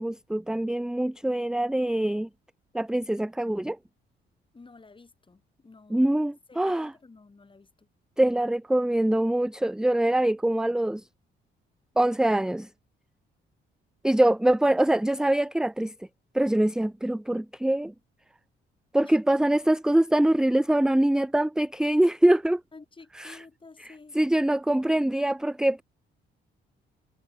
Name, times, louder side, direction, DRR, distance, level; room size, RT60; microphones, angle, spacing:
voice 1, 0.0-2.3 2.7-3.8 5.9-6.9 8.2-11.0 12.0-12.7 14.0-15.9 16.3-17.9 18.9-22.6 23.1-23.4 23.8-25.8, right 1 dB, 5° right, 0.6 m, -24 dB
voice 2, 4.5-6.1 6.5-7.9 19.0-19.2 22.7-24.2, left 3 dB, 25° left, 6.2 m, -51 dB
cardioid pair, 90°, 20 cm